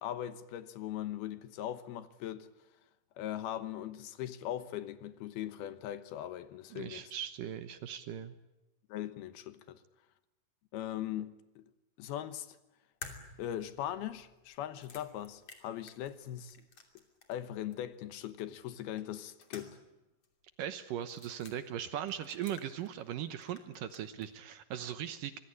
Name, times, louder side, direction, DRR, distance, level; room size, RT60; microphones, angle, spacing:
voice 1, 0.0-2.5 3.2-7.1 8.9-9.8 10.7-11.7 12.0-12.6 13.4-16.6 17.3-19.8, left 12 dB, 75° left, 3.0 m, -40 dB
voice 2, 6.7-8.3 20.6-25.4, right 10 dB, 70° right, 2.3 m, -39 dB
sound 1, 13.0-17.5 17.7-17.8 19.0-20.0 20.2-20.3 21.0-21.6 22.1-23.2 23.4-24.3, left 4 dB, 40° left, 3.5 m, -52 dB
25.0 x 21.0 x 10.0 m
omnidirectional pair, 4.6 m